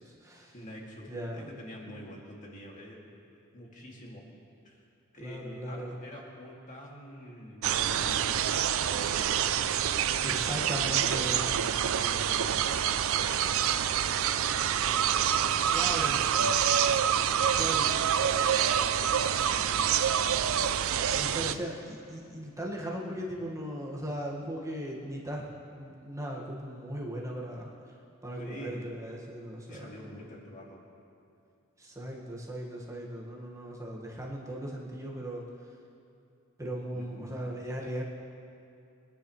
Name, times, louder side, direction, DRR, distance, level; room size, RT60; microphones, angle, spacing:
voice 1, 0.0-0.5 1.1-1.5 1.8-2.0 5.2-5.9 10.2-11.7 15.7-16.3 17.5-17.9 21.1-25.4 25.7-27.9 28.2-30.1 31.8-35.5 36.6-38.0, equal, 15° right, -3 dB, 1.8 m, -38 dB
voice 2, 0.5-3.0 3.5-4.3 4.6-4.8 5.1-9.7 10.4-16.6 17.1-20.9 28.4-28.8 29.6-30.8 36.9-37.3, equal, 35° left, -3 dB, 2.4 m, -47 dB
sound 1, 7.6-21.5, right 9 dB, 65° right, 0.5 m, -27 dB
24.5 x 10.5 x 3.3 m, 2.6 s
head